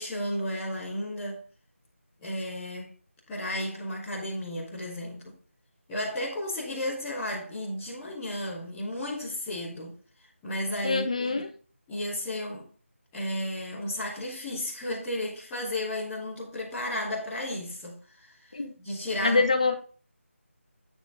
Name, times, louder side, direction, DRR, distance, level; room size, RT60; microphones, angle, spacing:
voice 1, 0.0-1.4 2.2-2.9 3.3-5.3 5.9-11.4 11.9-12.7 13.1-19.4, left 1 dB, ahead, 0.4 m, -33 dB
voice 2, 10.8-11.5 18.5-18.7 19.2-19.7, left 3 dB, 30° left, 1.2 m, -25 dB
9.1 x 5.4 x 5.2 m
figure-of-eight pair, 180°, 7 cm